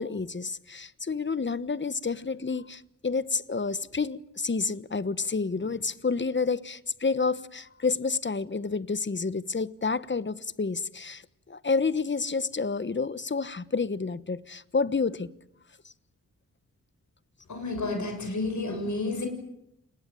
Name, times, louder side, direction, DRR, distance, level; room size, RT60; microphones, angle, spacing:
voice 1, 0.0-11.2 11.5-15.3, left 4 dB, 35° left, 1.2 m, -29 dB
voice 2, 17.5-19.3, left 2 dB, 60° left, 7.0 m, -30 dB
29.0 x 20.5 x 9.1 m
wide cardioid pair, 75°, 32 cm